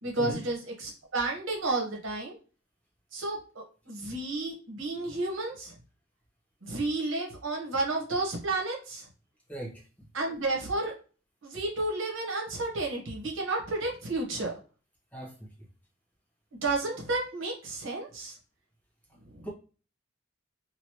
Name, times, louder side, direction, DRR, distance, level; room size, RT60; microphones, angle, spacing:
voice 1, 0.0-2.4 3.1-5.7 6.6-9.0 10.1-10.9 11.4-14.5 16.6-18.4 19.3-19.5, right 2 dB, 70° right, 0 dB, 1.1 m, -31 dB
voice 2, 9.5-10.1 15.1-15.5 19.4-19.5, right 1 dB, 10° left, -2 dB, 0.9 m, -39 dB
3.0 x 2.6 x 2.9 m, 0.36 s
head